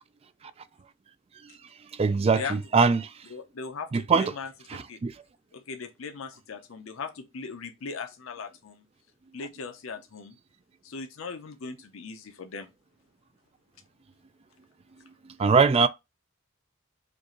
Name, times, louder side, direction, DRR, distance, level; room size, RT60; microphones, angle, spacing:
voice 1, 2.0-3.1 3.9-4.3 5.0-5.1 15.4-15.9, right 5 dB, 30° right, 0.3 m, -21 dB
voice 2, 3.3-5.0 5.5-8.8 9.3-10.4 10.8-12.7, left 4 dB, 80° left, 0.6 m, -39 dB
5.1 x 2.4 x 2.9 m
head